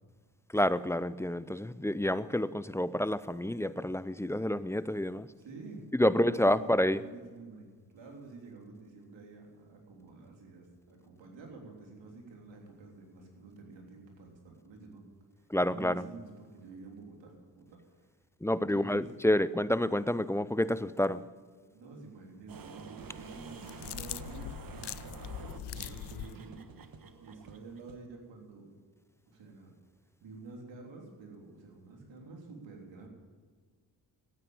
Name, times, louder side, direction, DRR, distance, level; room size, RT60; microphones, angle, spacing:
voice 1, 0.5-5.3 5.9-7.0 15.5-16.1 18.4-21.2, left 1 dB, 5° left, 16 dB, 0.5 m, -29 dB
voice 2, 5.4-5.8 6.2-15.0 15.6-17.8 18.5-19.1 21.7-26.6 27.2-28.7 29.3-29.7 30.2-33.1, right 3 dB, 80° right, 1 dB, 3.4 m, -49 dB
sound 1, 22.5-28.0, right 5 dB, 50° right, 1.3 m, -48 dB
sound 2, 23.5-26.4, left 13 dB, 65° left, 0.6 m, -42 dB
13.0 x 9.2 x 8.7 m, 1.5 s
supercardioid pair, 55°, 44 cm